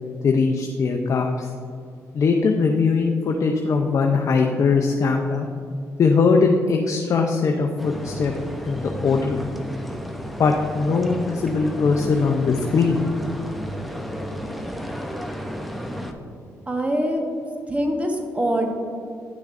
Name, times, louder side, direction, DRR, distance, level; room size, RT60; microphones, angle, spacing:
voice 1, 0.2-1.5 2.1-5.5 6.0-8.3 8.6-9.4 10.4-13.0, left 4 dB, 55° left, 2 dB, 0.6 m, -20 dB
sound 1, 7.8-16.1, equal, ahead, 0.7 m, -32 dB
voice 2, 16.7-17.2 17.7-18.7, right 1 dB, 20° right, 2 dB, 1.2 m, -23 dB
10.0 x 6.2 x 2.5 m, 2.4 s
cardioid pair, 70°, 6 cm